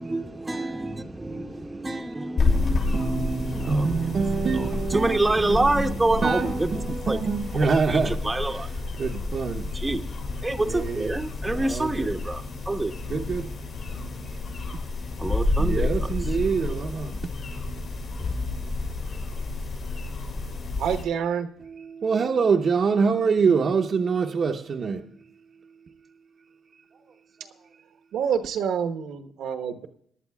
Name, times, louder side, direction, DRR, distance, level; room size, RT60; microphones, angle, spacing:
voice 1, 0.0-7.2 7.9-8.7 9.7-10.0 10.4-12.9 15.2-16.1, right 2 dB, 15° right, 0.8 m, -27 dB
sound 1, 2.4-21.0, left 3 dB, 60° left, 5.4 m, -30 dB
voice 2, 2.9-5.9 6.2-8.2 9.0-9.8 10.7-11.1 11.5-12.1 13.1-13.5 15.6-17.3 21.7-25.1 27.0-27.1, right 5 dB, 50° right, 0.8 m, -25 dB
voice 3, 20.8-21.6 28.1-29.9, right 7 dB, 80° right, 1.1 m, -27 dB
22.5 x 11.5 x 2.3 m
cardioid pair, 90°, 0 cm